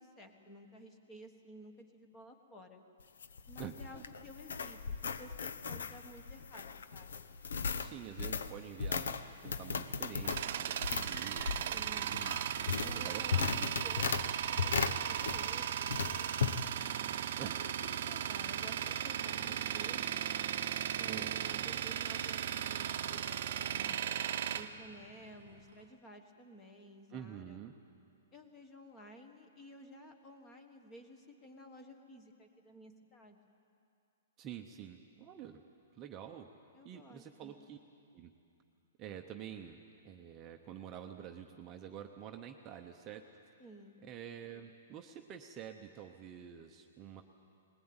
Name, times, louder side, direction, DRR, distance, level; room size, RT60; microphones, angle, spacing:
voice 1, 0.0-2.8 3.5-7.3 11.7-12.1 12.8-16.8 17.4-20.3 21.0-24.0 24.5-27.6 28.3-33.5 36.7-37.5 43.6-44.0, equal, 15° left, 5 dB, 1.5 m, -54 dB
sound 1, 3.0-15.6 15.9-16.6, left 6 dB, 85° left, 0.9 m, -37 dB
voice 2, 7.8-12.4 13.0-13.7 17.4-17.6 19.4-19.6 21.1-21.4 27.1-27.7 34.4-35.6 35.9-36.5 36.8-37.8 38.1-38.3 39.0-43.2 44.0-47.2, right 9 dB, 20° right, 4 dB, 0.8 m, -48 dB
Tools, 10.0-25.6, right 10 dB, 55° right, 0.8 m, -36 dB
Screaming, 11.1-11.9 12.1-12.9 13.3-14.2, left 1 dB, 35° left, 2.8 m, -52 dB
20.0 x 20.0 x 8.9 m, 2.6 s
hypercardioid pair, 165°, 0 cm